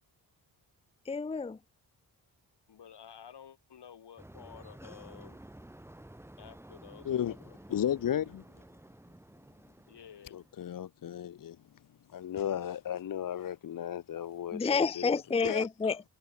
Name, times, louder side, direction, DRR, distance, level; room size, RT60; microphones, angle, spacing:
voice 1, 1.1-1.6 14.5-16.0, left 5 dB, 15° left, 0.5 m, -29 dB
voice 2, 2.7-5.4 6.4-8.0 9.9-10.4, left 8 dB, 80° left, 5.5 m, -52 dB
sound 1, 4.2-10.6, right 1 dB, 5° right, 1.5 m, -52 dB
voice 3, 7.0-7.4 7.7-8.4 10.3-11.6 12.1-14.7 15.0-15.1 15.4-15.7, left 10 dB, 55° left, 0.6 m, -34 dB
wide cardioid pair, 100°, 40 cm